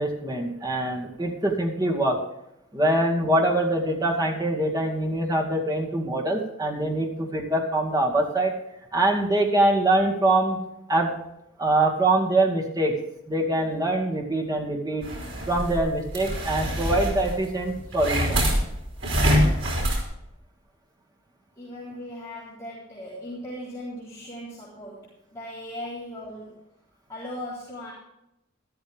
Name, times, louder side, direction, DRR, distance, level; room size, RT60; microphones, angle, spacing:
voice 1, 0.0-2.2 2.7-8.6 8.9-10.6 10.9-11.1 11.6-13.0 13.3-15.1 15.5-18.4, right 1 dB, 20° right, -1 dB, 2.2 m, -24 dB
sound 1, 15.0-20.0, equal, 75° right, 5.3 m, -25 dB
voice 2, 21.6-26.6 27.1-27.9, left 1 dB, 15° left, -9 dB, 3.9 m, -38 dB
13.5 x 13.0 x 3.6 m, 0.83 s
head